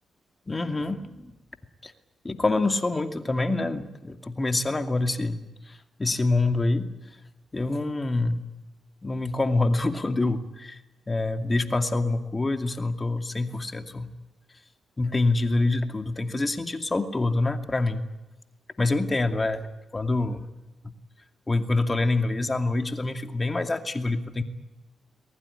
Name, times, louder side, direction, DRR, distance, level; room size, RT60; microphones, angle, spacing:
voice 1, 0.5-1.3 1.8-1.9 2.2-6.9 7.5-8.4 9.0-10.8 11.1-14.1 15.0-18.0 18.8-19.7 19.9-20.5 21.5-24.4, left 2 dB, 30° left, 6 dB, 2.5 m, -26 dB
23.0 x 20.5 x 9.9 m, 1.0 s
supercardioid pair, 45°, 0 cm